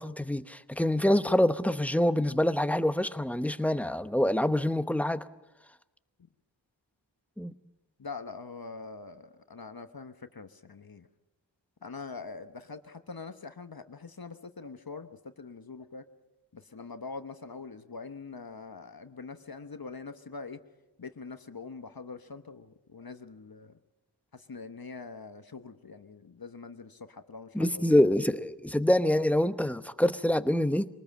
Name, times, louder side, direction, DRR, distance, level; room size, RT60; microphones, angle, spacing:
voice 1, 0.0-5.2 7.4-7.5 27.5-30.9, left 1 dB, 5° left, 11 dB, 0.9 m, -26 dB
voice 2, 8.0-11.1 11.8-16.0 16.5-20.6 21.0-23.8 24.3-27.8, left 4 dB, 55° left, 9 dB, 1.1 m, -44 dB
24.0 x 19.5 x 7.5 m, 1.0 s
wide cardioid pair, 65°, 44 cm